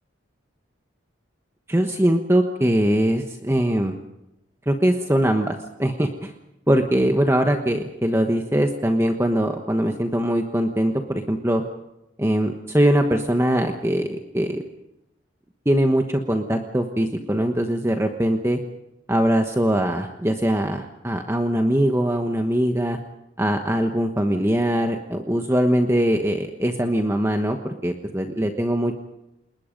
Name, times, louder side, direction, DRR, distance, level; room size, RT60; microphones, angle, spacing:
voice 1, 1.7-3.9 4.7-6.3 6.7-11.6 12.2-14.6 15.6-18.6 19.1-23.0 23.4-29.0, equal, 15° right, 4 dB, 1.2 m, -22 dB
30.0 x 20.5 x 5.3 m, 0.92 s
head